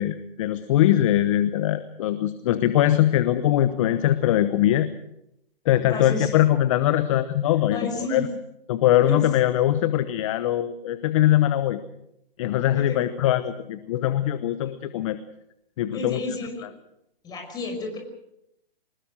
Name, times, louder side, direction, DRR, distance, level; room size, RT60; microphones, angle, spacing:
voice 1, 0.0-4.9 5.6-8.2 8.7-11.8 12.4-15.2 15.8-16.2, left 12 dB, 35° left, 12 dB, 1.1 m, -22 dB
voice 2, 5.9-6.4 7.7-8.3 9.0-9.3 12.7-13.1 15.9-16.6 17.2-18.0, left 3 dB, 15° left, 2 dB, 5.6 m, -31 dB
24.5 x 20.5 x 6.4 m, 0.80 s
hypercardioid pair, 150°, 30 cm